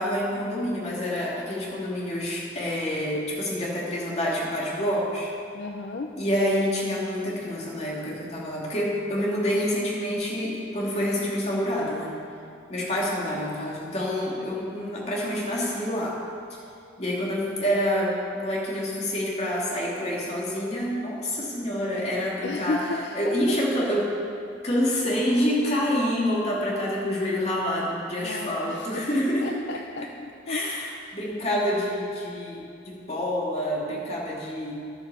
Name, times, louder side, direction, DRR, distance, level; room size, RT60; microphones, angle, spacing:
voice 1, 0.0-5.3 6.2-12.1 12.7-16.2 17.0-22.8 23.1-24.1 24.6-29.5 30.5-34.7, equal, 35° left, -5 dB, 2.5 m, -27 dB
voice 2, 5.5-6.1 22.4-23.2 28.2-29.1 29.4-30.9, left 3 dB, 60° left, 3 dB, 0.6 m, -33 dB
10.5 x 9.3 x 6.9 m, 2.5 s
head